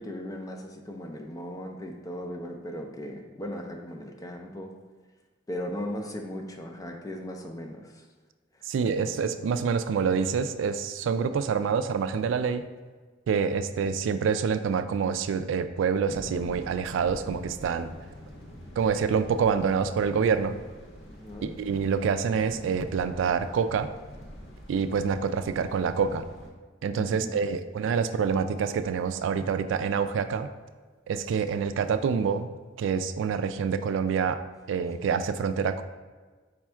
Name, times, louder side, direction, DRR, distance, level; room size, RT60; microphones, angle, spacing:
voice 1, 0.0-4.7 5.5-8.0 9.0-9.3 21.0-21.6 26.9-27.6, left 1 dB, 20° left, 3 dB, 0.4 m, -38 dB
voice 2, 8.7-12.7 13.3-17.9 18.8-20.5 21.4-23.9 24.7-26.2 26.8-30.5 31.1-34.4 34.7-35.8, right 6 dB, 70° right, 11 dB, 0.3 m, -27 dB
sound 1, 16.1-26.5, equal, 80° left, 0.7 m, -45 dB
5.1 x 2.3 x 4.3 m, 1.4 s
head